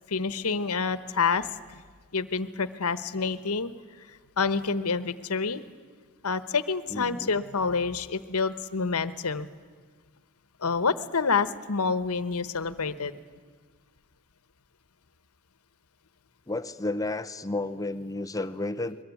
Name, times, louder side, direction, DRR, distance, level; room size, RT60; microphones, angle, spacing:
voice 1, 0.1-1.8 2.1-3.7 4.1-5.6 6.2-9.5 10.6-13.2, left 5 dB, 85° left, 14 dB, 1.1 m, -28 dB
voice 2, 6.9-7.3 16.5-19.0, left 2 dB, 15° left, 9 dB, 0.6 m, -32 dB
22.5 x 21.5 x 9.3 m, 1.5 s
head